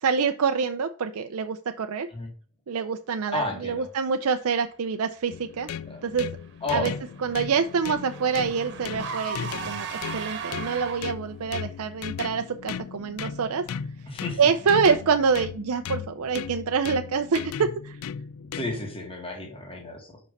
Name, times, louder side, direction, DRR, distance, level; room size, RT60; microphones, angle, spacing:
voice 1, 0.0-2.1 2.7-5.7 6.0-6.3 6.7-6.9 7.2-13.6 14.4-18.0, right 5 dB, 70° right, 7 dB, 0.5 m, -26 dB
voice 2, 3.3-3.9 5.9-6.0 6.6-6.9 9.6-9.8 14.1-14.4 18.5-20.2, left 2 dB, 25° left, 2 dB, 1.9 m, -32 dB
sound 1, 5.3-19.0, left 7 dB, 70° left, 0.3 m, -37 dB
Car / Engine, 6.3-11.3, right 5 dB, 55° right, 1.2 m, -37 dB
5.5 x 4.9 x 5.2 m, 0.42 s
head